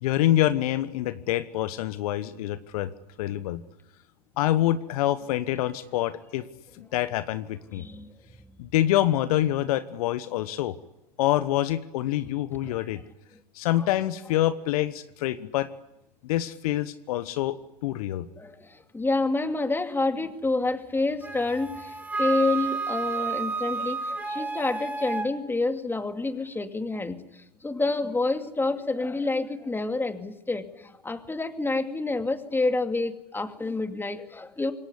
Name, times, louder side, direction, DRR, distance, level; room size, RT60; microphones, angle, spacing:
voice 1, 0.0-2.9 3.2-3.6 4.4-6.4 6.8-7.9 8.6-10.7 11.2-13.0 13.5-15.7 16.2-17.5 17.8-18.3, left 14 dB, 65° left, 14 dB, 1.2 m, -26 dB
voice 2, 7.7-8.1 12.6-12.8 13.8-13.9 18.4-34.7, left 3 dB, 10° left, 8 dB, 2.4 m, -28 dB
Wind instrument woodwind instrument, 21.2-25.3, right 4 dB, 10° right, 3.8 m, -31 dB
26.5 x 22.0 x 9.8 m, 0.89 s
hypercardioid pair, 90°, 21 cm